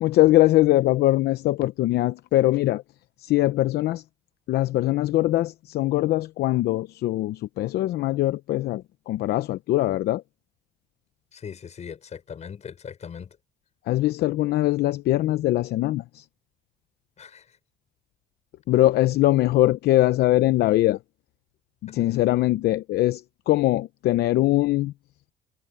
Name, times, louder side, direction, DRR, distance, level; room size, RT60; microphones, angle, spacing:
voice 1, 0.0-2.8 3.2-4.0 4.5-10.2 13.9-16.2 18.7-21.0 21.8-24.9, left 16 dB, 70° left, 0.8 m, -22 dB
voice 2, 11.3-13.4 17.2-17.5 21.9-22.0, left 7 dB, 40° left, 6.7 m, -39 dB
cardioid pair, 110°, 17 cm